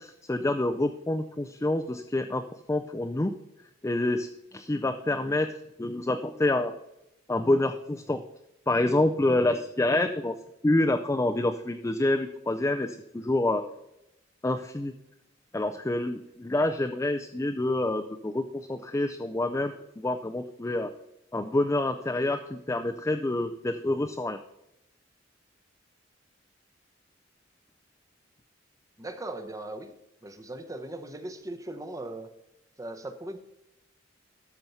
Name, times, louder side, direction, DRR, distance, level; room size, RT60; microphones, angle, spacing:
voice 1, 0.0-2.4 2.7-3.3 3.8-5.5 5.8-6.7 7.3-8.2 8.7-10.4 10.6-13.6 14.4-14.9 15.5-20.9 21.3-24.4, left 2 dB, 15° left, 6 dB, 0.4 m, -27 dB
voice 2, 29.0-29.9 30.2-32.3 32.8-33.4, right 2 dB, 20° right, 7 dB, 0.8 m, -39 dB
13.5 x 4.6 x 5.5 m, 0.87 s
head